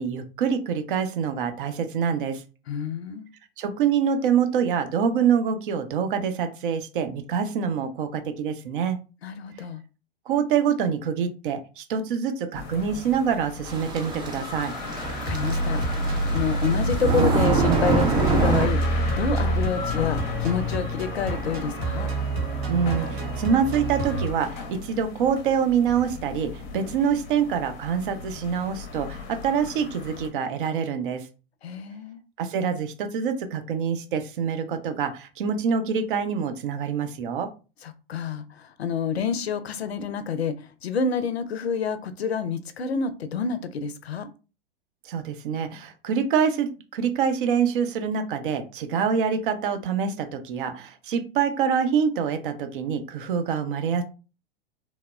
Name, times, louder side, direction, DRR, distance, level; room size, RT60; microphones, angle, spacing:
voice 1, 0.0-2.4 3.6-9.0 10.3-14.7 22.7-31.3 32.4-37.5 45.0-54.0, right 7 dB, 55° right, 7 dB, 0.6 m, -25 dB
voice 2, 2.7-3.3 9.2-9.8 15.3-22.1 31.6-32.2 37.8-44.3, left 6 dB, 85° left, 12 dB, 0.5 m, -28 dB
sound 1, 12.5-30.3, left 4 dB, 30° left, 0.6 m, -37 dB
sound 2, 13.7-18.7, right 4 dB, 15° right, 0.4 m, -25 dB
sound 3, 15.0-24.3, right 2 dB, 75° right, 1.2 m, -27 dB
3.0 x 2.0 x 2.3 m, 0.33 s
figure-of-eight pair, 100°, 31 cm